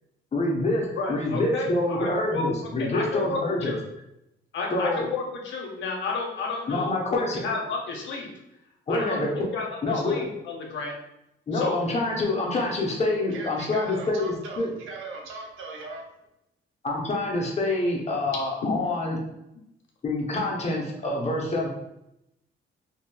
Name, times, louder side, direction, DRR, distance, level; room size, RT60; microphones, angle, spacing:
voice 1, 0.3-3.7 4.7-5.1 6.7-7.4 8.9-9.3 9.8-10.3 11.5-14.7 16.8-19.2 20.0-21.7, left 2 dB, 35° left, -1 dB, 0.8 m, -26 dB
voice 2, 1.0-3.8 4.5-8.3 8.9-9.3 9.5-10.9 11.5-11.8, left 4 dB, 70° left, 0 dB, 0.8 m, -32 dB
voice 3, 13.3-16.0, right 3 dB, 85° right, 0 dB, 0.7 m, -39 dB
2.9 x 2.7 x 2.2 m, 0.85 s
cardioid pair, 90°, 20 cm